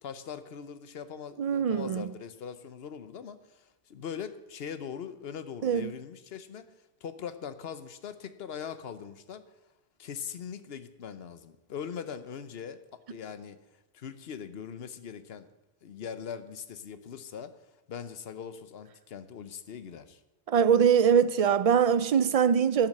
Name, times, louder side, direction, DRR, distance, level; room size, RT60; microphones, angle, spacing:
voice 1, 0.0-6.7 7.0-9.4 10.0-13.6 13.9-15.5 15.8-17.5 17.9-20.2, left 7 dB, 70° left, 1.0 m, -41 dB
voice 2, 1.4-2.1 5.6-5.9 20.5-22.9, right 7 dB, 55° right, 0.4 m, -23 dB
11.5 x 7.3 x 6.5 m
omnidirectional pair, 1.1 m